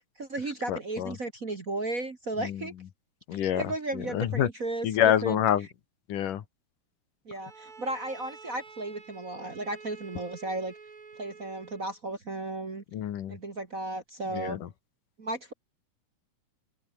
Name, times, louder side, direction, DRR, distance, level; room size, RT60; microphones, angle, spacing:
voice 1, 0.2-2.7 3.4-4.9 5.2-5.4 7.2-10.7 11.2-12.8 13.3-14.6 15.2-15.5, right 2 dB, 35° right, 1.7 m, -34 dB
voice 2, 0.7-1.2 2.4-2.6 3.3-3.6 3.9-4.5 4.8-5.7 6.1-6.4 12.9-13.4 14.3-14.7, left 10 dB, 85° left, 3.3 m, -27 dB
Bowed string instrument, 7.4-12.0, right 4 dB, 60° right, 6.6 m, -49 dB
omnidirectional pair, 3.7 m